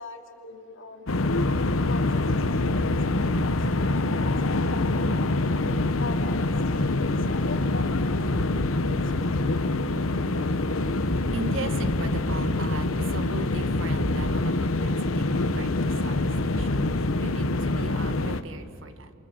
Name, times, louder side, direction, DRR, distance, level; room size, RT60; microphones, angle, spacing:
voice 1, 0.0-1.4 1.8-5.5 6.0-9.4, left 3 dB, 65° left, 3 dB, 2.9 m, -42 dB
sound 1, 1.1-18.4, left 2 dB, 90° left, 1.1 m, -25 dB
sound 2, 8.3-8.7 11.1-11.4 14.0-14.4 16.5-16.9, equal, 15° left, 1.9 m, -34 dB
voice 2, 9.4-19.1, right 3 dB, 70° right, 9 dB, 1.6 m, -39 dB
28.5 x 27.5 x 7.5 m, 2.3 s
head